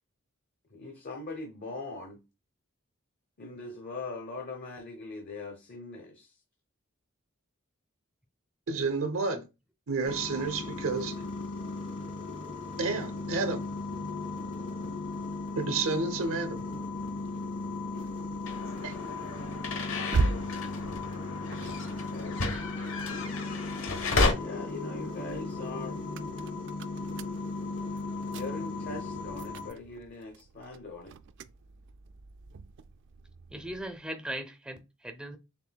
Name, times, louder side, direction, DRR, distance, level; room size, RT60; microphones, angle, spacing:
voice 1, 0.7-2.2 3.4-6.4 21.8-22.4 24.3-26.0 28.3-31.2, left 3 dB, 45° left, 0.7 m, -41 dB
voice 2, 8.7-9.4 9.9-11.2 12.8-13.6 15.6-16.7 18.8-19.0, right 4 dB, 80° right, 0.7 m, -30 dB
sound 1, 10.0-29.7, left 3 dB, 65° left, 2.7 m, -37 dB
sound 2, 17.2-23.8 24.2-34.0, right 3 dB, 60° right, 0.3 m, -39 dB
sound 3, 18.5-24.3, left 3 dB, 80° left, 1.0 m, -32 dB
voice 3, 33.5-35.4, right 1 dB, 5° right, 0.5 m, -38 dB
6.9 x 2.6 x 2.2 m
head